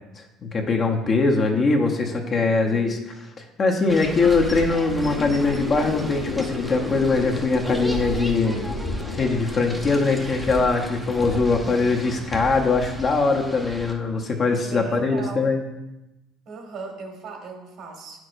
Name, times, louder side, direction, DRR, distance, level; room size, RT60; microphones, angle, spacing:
voice 1, 0.2-3.0 3.6-8.6 9.2-15.6, left 3 dB, 35° left, 2 dB, 0.8 m, -22 dB
voice 2, 2.3-3.0 8.4-8.9 11.5-12.1 14.6-15.5 16.4-18.2, right 4 dB, 55° right, 3 dB, 1.5 m, -38 dB
sound 1, 3.9-13.9, right 1 dB, ahead, 0.7 m, -34 dB
sound 2, 5.0-12.4, left 7 dB, 85° left, 0.5 m, -35 dB
8.6 x 6.1 x 2.6 m, 0.98 s
cardioid pair, 130°, 0 cm